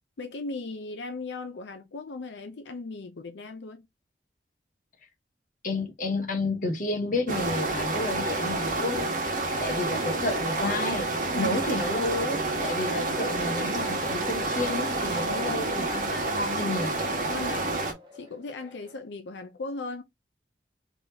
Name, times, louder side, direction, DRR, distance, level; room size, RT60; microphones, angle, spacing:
voice 1, 0.2-3.9 11.3-11.7 13.1-13.2 15.2-15.8 17.3-17.8 18.1-20.0, left 3 dB, 80° left, 0.6 m, -37 dB
voice 2, 5.6-11.1 11.4-17.0, left 2 dB, 45° left, 1.2 m, -31 dB
sound 1, 7.3-17.9, right 2 dB, 45° right, 1.2 m, -29 dB
sound 2, 10.9-19.0, left 1 dB, 25° right, 1.1 m, -45 dB
3.9 x 3.4 x 2.8 m
head